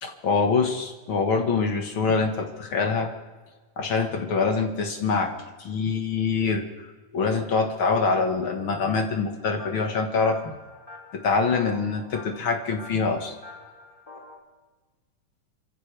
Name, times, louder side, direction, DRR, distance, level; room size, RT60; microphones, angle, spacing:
voice 1, 0.0-3.1 3.8-5.3 5.6-6.6 7.1-10.6 11.1-13.3, left 4 dB, 50° left, 4 dB, 1.7 m, -24 dB
sound 1, 9.6-14.4, left 3 dB, 20° left, 2.0 m, -46 dB
27.5 x 15.0 x 3.4 m, 1.3 s
omnidirectional pair, 3.6 m